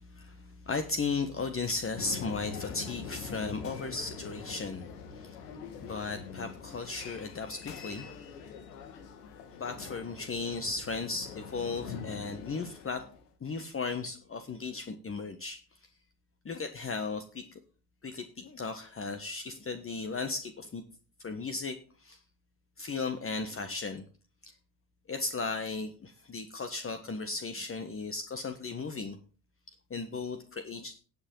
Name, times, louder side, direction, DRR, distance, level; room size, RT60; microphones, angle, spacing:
voice 1, 0.0-4.9 5.1-5.4 5.8-8.1 9.6-13.0 13.4-15.8 16.4-17.6 18.0-20.8 21.2-22.2 22.8-24.0 24.4-24.5 25.1-29.2 29.9-31.0, left 4 dB, 30° left, 7 dB, 1.4 m, -36 dB
sound 1, 2.0-13.2, left 6 dB, 80° left, 1.9 m, -44 dB
18.0 x 6.7 x 3.9 m, 0.39 s
hypercardioid pair, 60°, 46 cm